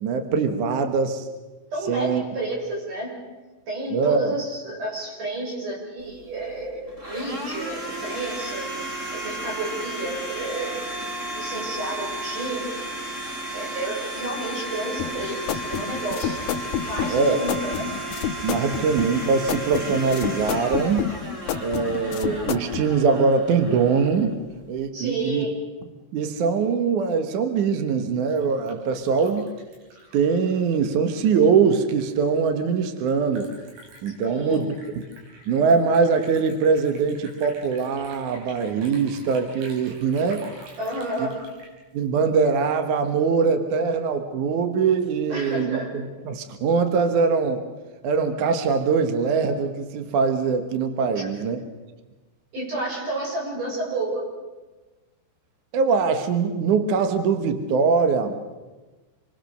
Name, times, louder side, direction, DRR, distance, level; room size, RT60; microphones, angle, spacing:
voice 1, 0.0-1.3 1.9-2.2 3.9-4.4 17.1-17.4 18.4-21.1 21.6-24.4 24.7-25.5 26.1-29.5 30.1-33.5 34.0-34.8 35.5-40.5 41.2-41.3 41.9-47.6 48.0-51.6 55.7-58.5, right 5 dB, 70° right, 7 dB, 1.9 m, -22 dB
voice 2, 1.7-3.1 3.7-10.8 11.3-13.2 13.5-16.4 16.8-17.9 24.9-25.5 34.2-34.6 40.8-41.4 45.3-45.9 51.1-51.3 52.5-54.2, right 2 dB, 40° right, -2 dB, 8.3 m, -31 dB
Domestic sounds home sounds, 6.0-24.8, right 1 dB, 20° right, 2.2 m, -34 dB
sound 1, 15.0-22.9, left 10 dB, 70° left, 2.3 m, -29 dB
Liquid, 28.0-42.6, right 2 dB, 90° right, 7.5 m, -48 dB
27.5 x 23.0 x 6.7 m, 1.2 s
omnidirectional pair, 5.5 m